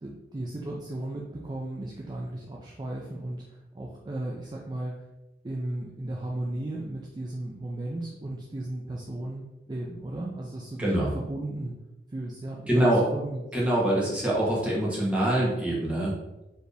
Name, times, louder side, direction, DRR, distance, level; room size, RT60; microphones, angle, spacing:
voice 1, 0.0-4.9 5.4-11.8 12.1-13.4, right 1 dB, 25° right, -2 dB, 0.4 m, -35 dB
voice 2, 10.8-11.1 12.7-13.0 13.5-16.1, right 1 dB, 5° right, -6 dB, 1.2 m, -24 dB
4.2 x 2.9 x 3.4 m, 1.0 s
head